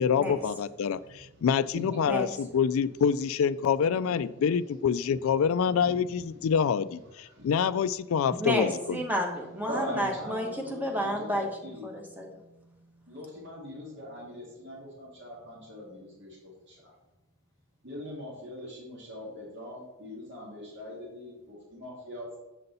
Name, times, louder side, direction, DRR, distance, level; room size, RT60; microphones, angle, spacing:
voice 1, 0.0-2.3 2.5-9.0, left 7 dB, 70° left, 16 dB, 0.3 m, -26 dB
voice 2, 0.8-1.4 1.7-2.1 2.5-2.6 3.8-4.7 5.0-5.1 5.5-6.4 7.1-7.5 9.7-11.9 13.1-16.9 17.8-22.3, equal, 55° right, -4 dB, 2.2 m, -42 dB
sound 1, 8.3-16.8, right 1 dB, 15° left, 0.8 m, -52 dB
voice 3, 8.4-12.3, equal, 10° right, 2 dB, 1.1 m, -31 dB
7.8 x 5.4 x 4.0 m, 0.97 s
head